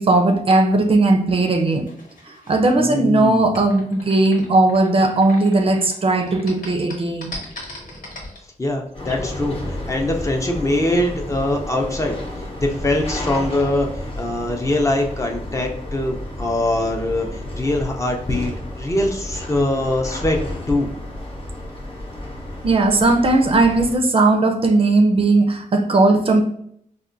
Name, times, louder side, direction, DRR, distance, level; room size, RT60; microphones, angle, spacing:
voice 1, 0.0-1.9 2.3-7.3 22.6-26.4, right 2 dB, 40° right, 5 dB, 0.4 m, -17 dB
sound 1, 1.6-5.9 6.2-8.4, equal, 85° left, 1.1 m, -29 dB
voice 2, 8.6-12.2 12.6-13.9 14.2-18.5 18.8-20.4 20.7-20.9, left 1 dB, 20° left, 1 dB, 0.4 m, -22 dB
sound 2, 8.9-24.0, left 1 dB, 40° left, 0.8 m, -32 dB
4.3 x 2.1 x 2.5 m, 0.69 s
wide cardioid pair, 145°, 14 cm